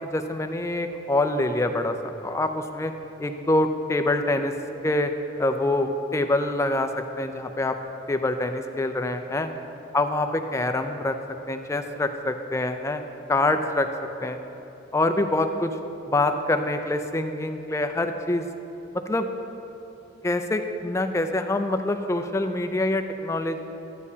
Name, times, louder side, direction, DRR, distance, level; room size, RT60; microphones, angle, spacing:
voice 1, 0.1-2.9 3.2-4.5 4.8-5.1 5.4-7.8 8.1-9.5 9.9-11.2 11.5-13.0 13.3-13.9 14.2-14.4 14.9-15.7 16.1-18.4 19.1-19.3 20.2-23.6, left 2 dB, 15° left, 7 dB, 0.4 m, -25 dB
12.0 x 8.2 x 2.8 m, 3.0 s
head